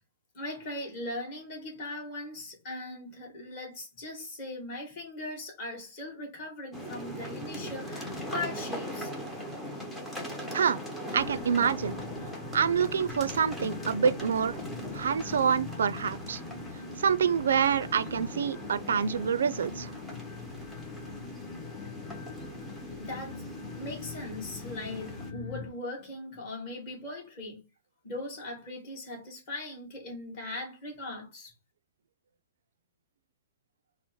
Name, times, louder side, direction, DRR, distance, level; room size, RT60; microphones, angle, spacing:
voice 1, 0.3-9.1 22.9-23.4 23.8-27.6 28.0-31.5, left 2 dB, 30° left, 2.0 m, -39 dB
sound 1, 6.7-25.3, equal, 5° left, 0.7 m, -41 dB
sound 2, 11.1-25.7, left 4 dB, 45° left, 1.3 m, -42 dB
voice 2, 11.1-11.9 12.5-14.5 14.9-16.4 17.0-19.9, right 7 dB, 80° right, 0.4 m, -26 dB
4.3 x 2.0 x 4.5 m
hypercardioid pair, 175°, 0 cm